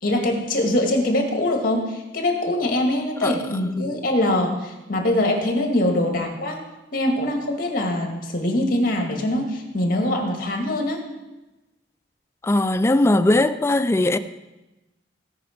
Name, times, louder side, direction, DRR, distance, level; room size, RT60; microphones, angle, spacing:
voice 1, 0.0-6.6 6.9-11.0, left 1 dB, 55° left, 1.9 m, -23 dB
voice 2, 12.4-14.2, left 1 dB, 15° left, 0.4 m, -19 dB
17.0 x 5.7 x 5.1 m
head